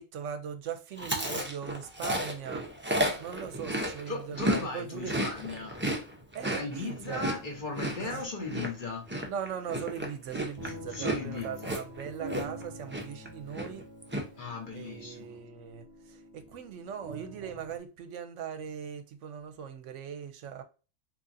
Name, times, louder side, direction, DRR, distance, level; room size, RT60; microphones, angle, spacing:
voice 1, 0.0-2.7 3.2-5.2 6.3-7.3 8.0-8.2 9.2-13.8 14.7-20.6, right 8 dB, 75° right, 0.9 m, -40 dB
Chewing mastication, 1.0-4.6 4.9-12.6 12.9-13.3 13.5-14.2, equal, 15° right, 0.4 m, -32 dB
voice 2, 4.1-5.8 6.6-9.0 10.6-11.7 14.4-15.3, left 3 dB, 45° left, 1.1 m, -37 dB
sound 1, 7.1-17.8, right 2 dB, 40° right, 1.0 m, -47 dB
3.7 x 2.9 x 2.6 m
omnidirectional pair, 1.3 m